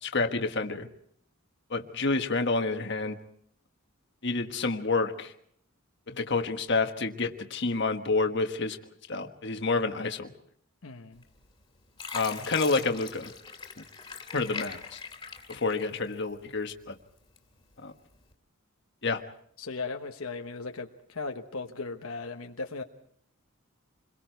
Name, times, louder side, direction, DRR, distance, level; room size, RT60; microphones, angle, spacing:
voice 1, 0.0-0.9 1.7-3.2 4.2-5.3 6.1-8.8 9.1-10.3 12.1-13.3 13.8-13.9 14.3-15.0 15.5-17.0 17.8-17.9 19.0-19.2, left 3 dB, 50° left, 5 dB, 1.5 m, -29 dB
voice 2, 10.8-11.2 19.6-22.8, left 4 dB, 75° left, 4 dB, 1.2 m, -37 dB
Fill (with liquid), 11.2-11.6 12.0-16.4 16.8-17.6 18.2-18.3, left 5 dB, 20° left, 2.6 m, -41 dB
28.0 x 22.5 x 4.7 m, 0.67 s
head